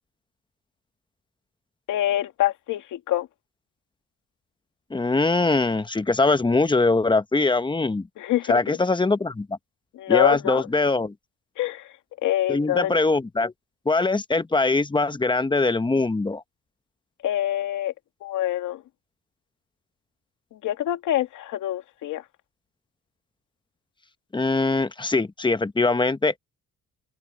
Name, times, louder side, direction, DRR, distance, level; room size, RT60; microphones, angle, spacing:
voice 1, 1.9-3.3 8.2-8.8 9.9-10.7 11.6-11.9 12.2-12.9 17.2-17.9 18.2-18.8 20.5-22.2, left 13 dB, 85° left, 2.5 m, -25 dB
voice 2, 4.9-8.1 8.5-9.6 10.1-11.1 12.5-13.5 13.8-16.4 24.3-26.4, left 3 dB, 15° left, 1.1 m, -22 dB
open air
cardioid pair, 90°, 30 cm